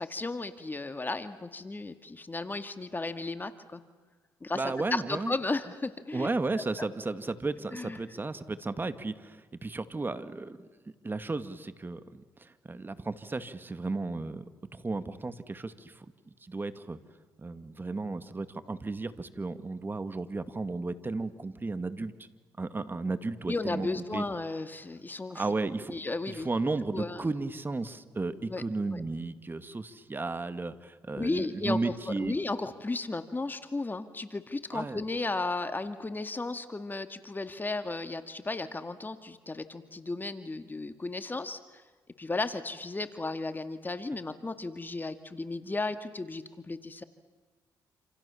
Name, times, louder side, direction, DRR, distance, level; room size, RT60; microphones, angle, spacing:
voice 1, 0.0-3.8 4.4-6.3 6.8-6.9 7.7-8.0 23.5-25.4 25.9-26.5 26.9-27.3 28.5-28.6 28.9-29.0 31.2-41.8 42.2-47.0, left 3 dB, 25° left, 9 dB, 2.1 m, -34 dB
voice 2, 4.5-5.3 6.1-10.7 11.0-14.4 14.7-16.1 16.4-17.0 17.4-22.1 22.6-24.2 25.3-26.0 26.3-32.3 34.7-35.0, right 3 dB, 25° right, 11 dB, 2.2 m, -34 dB
28.5 x 28.0 x 7.2 m, 1.3 s
supercardioid pair, 65°, 8 cm